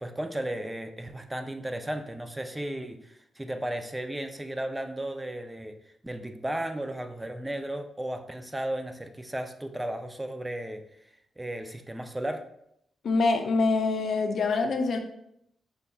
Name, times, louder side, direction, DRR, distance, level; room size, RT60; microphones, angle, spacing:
voice 1, 0.0-5.8 6.0-10.8 11.4-12.4, right 1 dB, 10° right, 7 dB, 0.4 m, -34 dB
voice 2, 13.0-15.0, left 3 dB, 65° left, 6 dB, 0.5 m, -25 dB
5.4 x 3.4 x 2.3 m, 0.75 s
cardioid pair, 80°, 0 cm